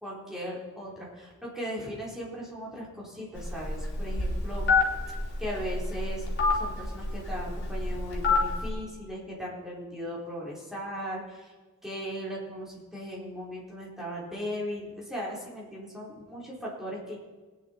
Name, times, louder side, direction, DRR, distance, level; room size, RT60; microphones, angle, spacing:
voice 1, 0.0-4.7 5.4-6.2 6.5-11.5 11.8-17.2, equal, ahead, -5 dB, 3.7 m, -37 dB
Telephone, 3.4-8.7, left 3 dB, 55° left, 3.1 m, -28 dB
20.0 x 9.8 x 4.3 m, 1.4 s
head